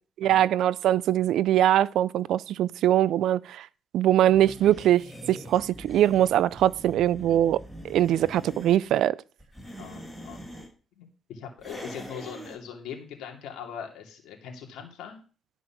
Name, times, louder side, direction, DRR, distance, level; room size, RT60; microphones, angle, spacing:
voice 1, 0.2-3.7 3.9-9.2, right 12 dB, 80° right, 0.4 m, -22 dB
sound 1, 4.3-8.8 9.4-10.7 11.6-12.6, equal, ahead, 6.2 m, -43 dB
voice 2, 9.8-10.5 11.0-15.2, left 7 dB, 85° left, 2.6 m, -41 dB
12.5 x 5.1 x 5.9 m
cardioid pair, 90°, 0 cm